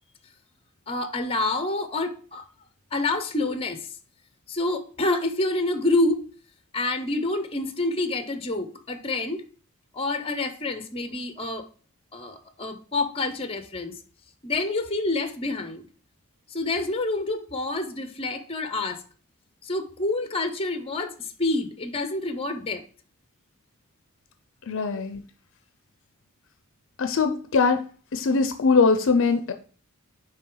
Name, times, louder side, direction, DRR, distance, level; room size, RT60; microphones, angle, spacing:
voice 1, 0.9-2.5 2.9-3.9 4.5-6.3 6.7-9.4 9.9-11.7 12.1-13.9 14.4-15.9 16.5-19.0 19.6-22.8, left 2 dB, 25° left, 9 dB, 0.7 m, -27 dB
voice 2, 24.7-25.2 27.0-27.9 28.1-29.5, left 4 dB, 60° left, 8 dB, 0.6 m, -21 dB
9.0 x 3.4 x 3.8 m, 0.40 s
head